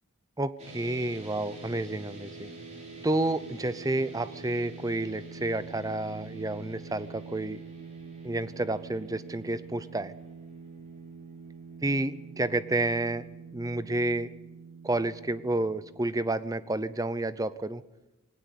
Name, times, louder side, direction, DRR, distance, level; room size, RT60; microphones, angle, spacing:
voice 1, 0.4-2.5 3.0-7.6 8.2-10.1 11.8-13.2 13.5-14.3 14.8-17.8, right 2 dB, 15° right, 15 dB, 0.6 m, -30 dB
sound 1, 0.6-16.9, right 4 dB, 30° right, 3.7 m, -45 dB
19.5 x 18.0 x 8.2 m, 1.0 s
head